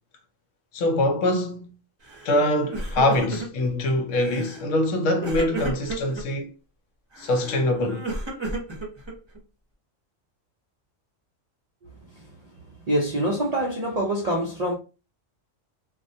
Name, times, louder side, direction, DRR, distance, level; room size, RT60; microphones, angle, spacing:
voice 1, 0.7-1.7 2.2-6.5 7.2-8.1, left 1 dB, 75° left, 0.9 m, -24 dB
Crying sobbing, 2.1-2.4 2.6-3.7 4.2-4.6 5.2-6.2 7.1-9.4, right 2 dB, 25° right, 0.6 m, -32 dB
voice 2, 11.9-12.4 12.8-14.7, right 1 dB, 60° right, 0.4 m, -26 dB
2.3 x 2.1 x 2.6 m
omnidirectional pair, 1.4 m